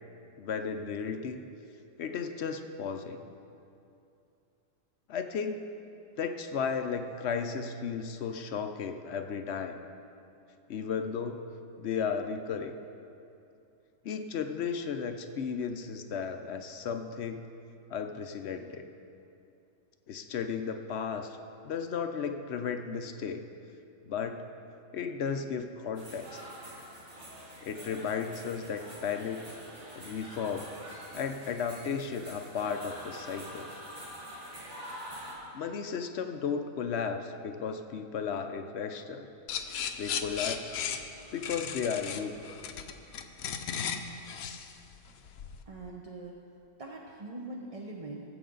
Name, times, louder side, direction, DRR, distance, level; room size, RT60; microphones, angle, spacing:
voice 1, 0.4-1.5 2.0-3.2 5.1-5.6 6.2-9.8 10.7-11.4 11.8-12.7 14.0-17.5 17.9-18.8 20.1-21.4 21.6-23.5 24.0-24.4 24.9-26.4 27.6-29.5 29.9-30.7 31.1-33.7 35.5-39.3 40.0-40.7 41.3-42.5, left 6 dB, 60° left, 7 dB, 0.8 m, -34 dB
sound 1, 25.9-35.3, right 1 dB, 50° right, 2.7 m, -46 dB
sound 2, 39.5-45.6, left 7 dB, 75° left, 1.1 m, -36 dB
voice 2, 45.7-46.4 46.8-48.2, right 2 dB, 35° right, -2 dB, 0.6 m, -42 dB
19.0 x 7.9 x 3.9 m, 2.7 s
omnidirectional pair, 1.5 m